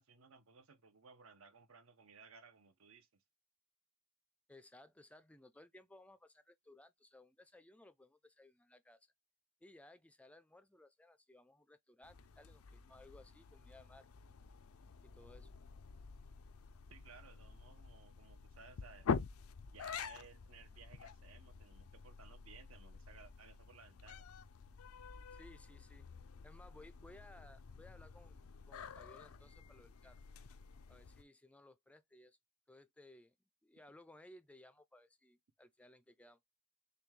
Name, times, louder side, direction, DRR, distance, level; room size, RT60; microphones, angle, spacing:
voice 1, 0.0-3.2 16.9-19.1 19.7-24.3, right 5 dB, 70° right, 0.8 m, -60 dB
voice 2, 4.5-9.1 9.6-14.1 15.0-15.5 25.3-26.1 26.4-30.2 30.9-32.4 32.7-33.4 33.6-36.4, left 1 dB, 5° left, 0.4 m, -61 dB
sound 1, 12.0-31.2, left 6 dB, 85° left, 0.5 m, -47 dB
6.8 x 2.3 x 3.2 m
head